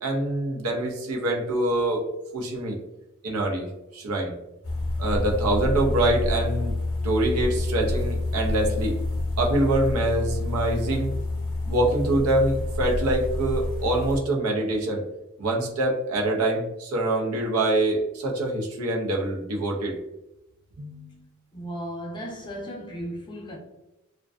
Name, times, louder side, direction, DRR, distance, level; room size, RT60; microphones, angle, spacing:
voice 1, 0.0-2.0 2.3-2.8 3.2-4.3 5.0-6.8 7.0-9.0 9.4-11.1 11.7-15.0 15.4-20.0 20.8-21.2, right 1 dB, 85° right, 0.5 m, -25 dB
sound 1, 4.6-14.2, left 2 dB, 65° left, 0.6 m, -28 dB
voice 2, 21.5-23.6, equal, 20° left, 0.4 m, -35 dB
2.5 x 2.1 x 2.3 m
head